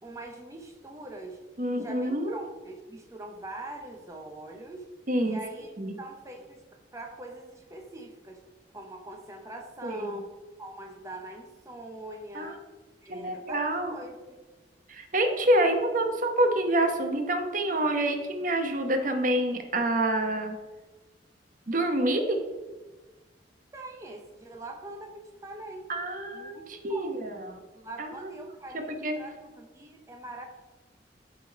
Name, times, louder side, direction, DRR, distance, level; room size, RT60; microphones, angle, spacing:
voice 1, 0.0-1.4 1.7-4.9 5.2-5.7 6.0-8.4 8.7-10.3 10.6-12.6 13.0-14.4 23.7-25.9 26.3-27.3 27.8-28.9 29.2-30.5, right 2 dB, 20° right, 2 dB, 0.7 m, -43 dB
voice 2, 1.6-2.4 5.1-5.4 5.8-6.0 9.8-10.2 12.3-12.5 13.1-13.9 14.9-20.6 21.7-22.4 25.9-27.6 28.0-28.4 28.7-29.1, right 1 dB, 50° right, 5 dB, 1.0 m, -27 dB
11.5 x 3.8 x 4.6 m, 1.2 s
head